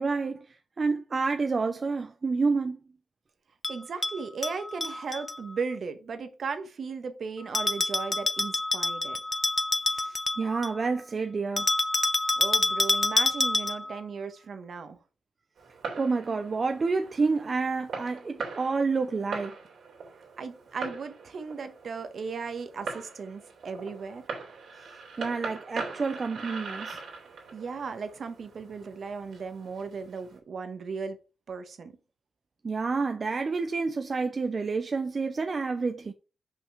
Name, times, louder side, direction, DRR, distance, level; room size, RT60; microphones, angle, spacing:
voice 1, 0.0-2.8 9.9-11.7 16.0-19.6 25.2-27.0 32.6-36.1, right 4 dB, 40° right, 0.6 m, -29 dB
Bell, 3.6-5.4 7.5-10.8 11.6-14.0, left 2 dB, 25° left, 0.6 m, -27 dB
voice 2, 3.7-9.2 12.4-15.0 20.4-24.3 27.5-31.2 31.5-31.9, right 5 dB, 60° right, 1.2 m, -36 dB
Fireworks, 15.6-30.4, right 4 dB, 80° right, 2.8 m, -41 dB
5.7 x 5.3 x 4.9 m
cardioid pair, 100°, 0 cm